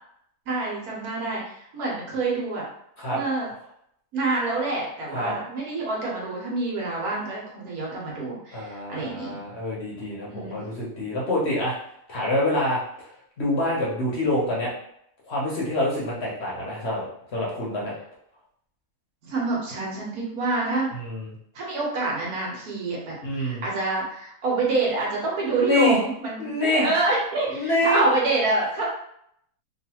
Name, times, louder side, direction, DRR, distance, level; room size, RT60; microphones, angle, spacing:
voice 1, 0.5-2.6 3.1-3.5 4.1-9.4 10.2-10.6 19.2-20.9 21.5-28.8, right 3 dB, 80° right, -3 dB, 1.4 m, -27 dB
voice 2, 8.5-11.8 12.1-12.8 13.4-14.7 15.3-17.0 17.3-17.9 20.9-21.3 23.2-23.6 25.6-26.0 26.4-26.9 27.5-28.1, left 1 dB, 55° left, -5 dB, 0.9 m, -26 dB
3.1 x 2.4 x 2.9 m, 0.72 s
omnidirectional pair, 1.6 m